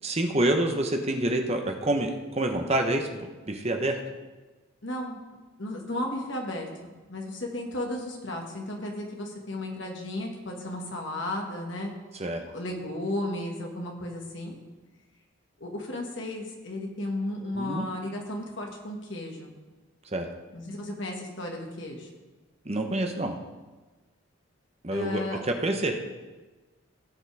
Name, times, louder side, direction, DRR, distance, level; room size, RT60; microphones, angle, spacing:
voice 1, 0.0-4.0 12.2-12.4 17.5-17.9 20.1-20.3 22.6-23.4 24.8-25.9, right 1 dB, 30° right, 4 dB, 1.0 m, -27 dB
voice 2, 4.8-5.2 5.6-6.7 7.1-11.9 12.5-14.6 15.6-19.5 20.5-22.1 24.9-25.4, left 1 dB, 60° left, 1 dB, 1.8 m, -34 dB
17.0 x 7.3 x 3.5 m, 1.2 s
head